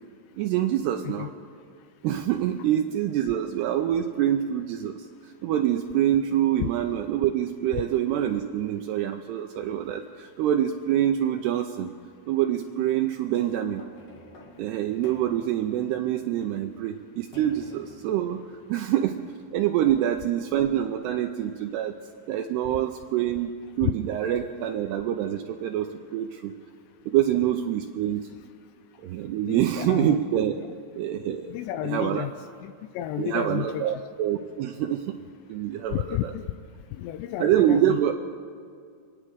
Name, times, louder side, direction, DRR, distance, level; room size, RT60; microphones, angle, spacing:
voice 1, 0.4-1.3 2.0-5.1 5.4-11.9 12.3-13.8 14.6-19.2 19.5-21.9 22.3-26.5 27.1-28.3 29.0-30.5 31.0-31.5 31.8-32.3 33.2-35.0 35.5-36.3 37.4-38.1, right 11 dB, 85° right, 5 dB, 2.4 m, -26 dB
sound 1, 13.3-20.1 20.7-20.8, left 2 dB, 55° left, 2.9 m, -51 dB
voice 2, 29.5-30.2 31.5-32.3 32.6-33.8 35.9-36.4 36.9-38.0, left 13 dB, 85° left, 10 dB, 2.6 m, -31 dB
28.0 x 9.7 x 4.9 m, 2.2 s
omnidirectional pair, 5.3 m